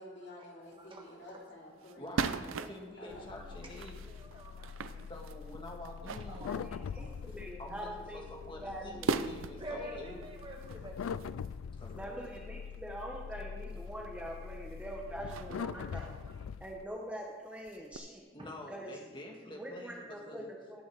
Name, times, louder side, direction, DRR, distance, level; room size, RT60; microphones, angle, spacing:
voice 1, 0.0-2.1 3.0-3.3, left 1 dB, 55° left, -3 dB, 3.1 m, -50 dB
voice 2, 0.7-1.4 3.3-5.1 6.3-7.1 9.6-11.0 15.6-16.6 18.4-18.5, right 1 dB, 25° right, 1 dB, 1.3 m, -49 dB
sound 1, 0.7-0.8 1.2-1.3 1.8-3.1 3.7-7.4 7.8-8.0 8.4-8.5 9.0-9.8 10.2-12.4 13.0-13.1 13.8-14.0 14.3-14.8 15.3-16.8 17.1-17.2 17.5-18.0, right 4 dB, 80° right, 0.6 m, -40 dB
voice 3, 1.9-4.0 5.1-6.6 7.6-10.2 11.7-12.1 18.3-20.5, left 1 dB, 25° left, 0 dB, 1.7 m, -48 dB
voice 4, 2.6-3.2 6.5-9.1 9.7-10.2 11.9-16.1 16.6-18.2 18.7-18.9 19.5-20.8, equal, 5° right, -1 dB, 0.9 m, -44 dB
sound 2, 3.1-16.8, left 6 dB, 85° left, 0.3 m, -43 dB
17.5 x 6.2 x 4.8 m, 1.4 s
head